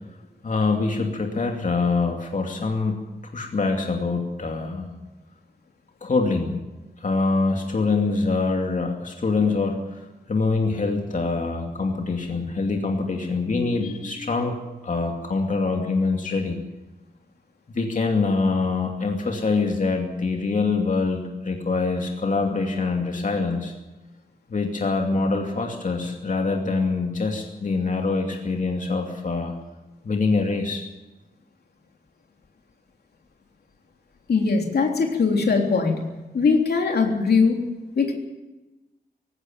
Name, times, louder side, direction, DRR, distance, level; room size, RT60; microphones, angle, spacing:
voice 1, 0.4-3.0 3.3-4.9 6.0-6.6 7.0-10.0 10.3-14.6 14.8-16.6 17.7-23.7 24.5-29.5 30.0-30.8, left 3 dB, 50° left, 2 dB, 2.6 m, -24 dB
voice 2, 34.3-37.6 38.0-38.1, left 4 dB, 75° left, 2 dB, 3.4 m, -21 dB
19.0 x 16.5 x 9.1 m, 1.1 s
wide cardioid pair, 95°, 16 cm